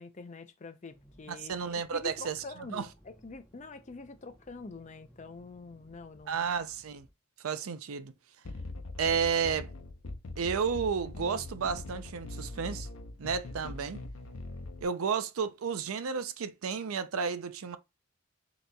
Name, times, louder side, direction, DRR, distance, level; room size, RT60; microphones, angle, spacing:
voice 1, 0.0-6.5, left 3 dB, 35° left, 0.5 m, -46 dB
Accelerating revving vroom, 0.9-7.1, equal, 10° left, 1.0 m, -60 dB
voice 2, 1.3-2.9 6.3-7.1 7.4-8.1 9.0-9.7 10.4-12.9 13.2-14.0 14.8-17.8, right 6 dB, 85° right, 0.5 m, -32 dB
sound 1, 8.4-14.8, left 2 dB, 80° left, 0.7 m, -42 dB
6.4 x 3.0 x 2.3 m
head